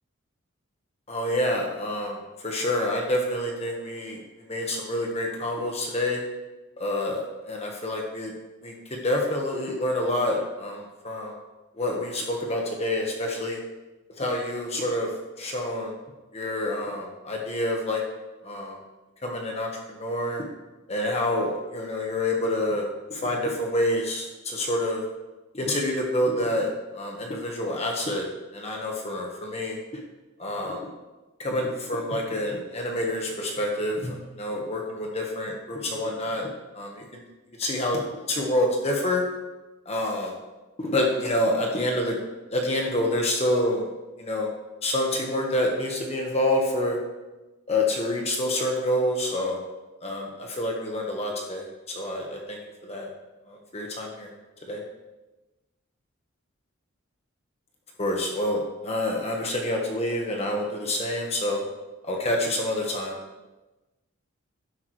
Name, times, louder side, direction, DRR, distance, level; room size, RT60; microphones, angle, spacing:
voice 1, 1.1-2.2 2.4-4.2 4.5-6.2 6.8-8.3 8.6-11.3 11.8-13.6 14.2-15.1 15.4-15.9 16.3-18.0 18.4-18.8 19.2-20.4 20.9-22.8 23.1-25.0 25.5-28.3 28.5-29.8 30.4-30.8 31.4-36.5 36.7-37.0 37.6-38.0 38.3-39.2 39.9-40.3 40.8-42.2 42.5-43.8 44.2-44.5 44.8-47.0 47.7-49.6 50.0-51.7 51.9-53.1 53.5-54.3 54.7-54.8 58.0-61.6 62.1-63.2, left 1 dB, 30° left, 0 dB, 1.3 m, -27 dB
12.0 x 10.5 x 3.2 m, 1.1 s
head